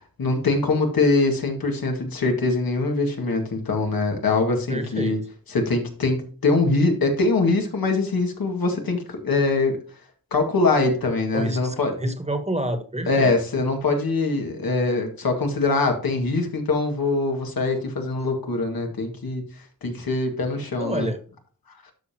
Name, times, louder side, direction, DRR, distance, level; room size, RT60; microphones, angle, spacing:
voice 1, 0.0-5.2 5.5-9.7 10.3-11.9 13.1-21.1, left 3 dB, 85° left, 3 dB, 2.1 m, -23 dB
voice 2, 4.7-5.2 11.3-13.3 20.8-21.2, right 1 dB, 20° right, 8 dB, 1.5 m, -28 dB
12.5 x 5.3 x 2.9 m, 0.42 s
wide cardioid pair, 70°, 34 cm